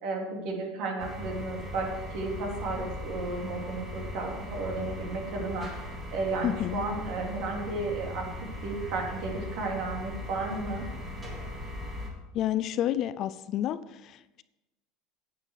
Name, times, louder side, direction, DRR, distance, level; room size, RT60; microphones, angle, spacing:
voice 1, 0.0-5.7 6.1-8.3 8.6-10.8, right 3 dB, 60° right, 1 dB, 3.2 m, -33 dB
sound 1, 1.0-12.1, left 1 dB, 20° right, 3.4 m, -39 dB
voice 2, 6.4-6.8 12.3-14.4, left 12 dB, 40° left, 15 dB, 0.5 m, -30 dB
9.7 x 9.0 x 6.5 m, 1.0 s
supercardioid pair, 150°, 0 cm